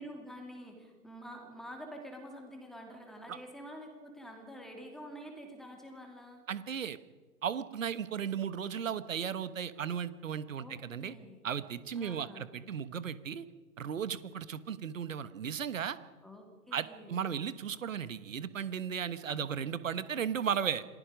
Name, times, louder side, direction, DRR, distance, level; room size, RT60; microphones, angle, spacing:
voice 1, 0.0-6.4 10.6-11.5 11.9-12.6 16.2-17.3, equal, ahead, 2 dB, 2.9 m, -48 dB
voice 2, 6.5-7.0 7.4-11.1 11.4-13.5 13.8-16.0 16.7-20.8, right 8 dB, 55° right, 15 dB, 1.4 m, -35 dB
27.5 x 19.5 x 5.2 m, 1.4 s
figure-of-eight pair, 135°, 47 cm